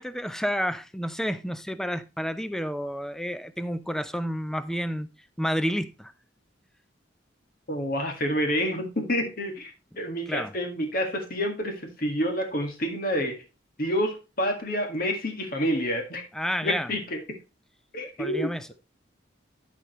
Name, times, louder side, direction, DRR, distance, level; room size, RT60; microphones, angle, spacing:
voice 1, 0.0-5.1 5.4-6.1 10.3-10.5 16.3-16.9 18.2-18.7, equal, 5° left, 0.5 m, -30 dB
voice 2, 7.7-13.4 13.8-16.3 16.6-17.2 17.9-18.5, equal, 50° left, 1.8 m, -28 dB
13.0 x 5.1 x 3.1 m
head